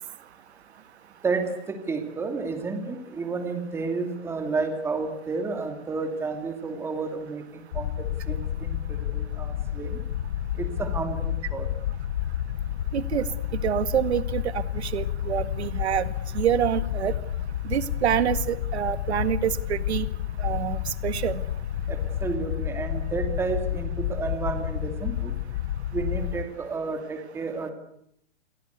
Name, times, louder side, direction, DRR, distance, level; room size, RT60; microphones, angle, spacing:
voice 1, 1.2-10.0 10.5-11.7 21.9-25.3 25.9-27.7, right 4 dB, 5° right, 6 dB, 2.5 m, -31 dB
sound 1, 7.7-26.5, left 11 dB, 40° left, 1.2 m, -30 dB
voice 2, 12.9-13.2 13.6-16.1 16.3-17.1 17.6-20.1 20.4-21.4, right 10 dB, 65° right, 13 dB, 2.0 m, -26 dB
29.0 x 23.0 x 8.3 m, 0.72 s
hypercardioid pair, 175°, 35 cm